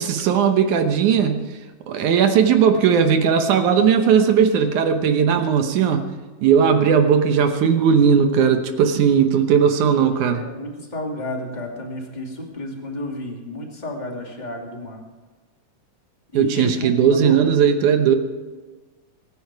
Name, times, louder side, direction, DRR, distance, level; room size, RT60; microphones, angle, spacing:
voice 1, 0.0-1.6 1.9-6.1 6.4-10.4 16.3-18.2, right 7 dB, 70° right, 7 dB, 2.3 m, -17 dB
voice 2, 10.0-15.0 16.3-17.4, left 1 dB, 15° left, 1 dB, 1.9 m, -32 dB
23.0 x 10.5 x 4.7 m, 1.3 s
omnidirectional pair, 3.9 m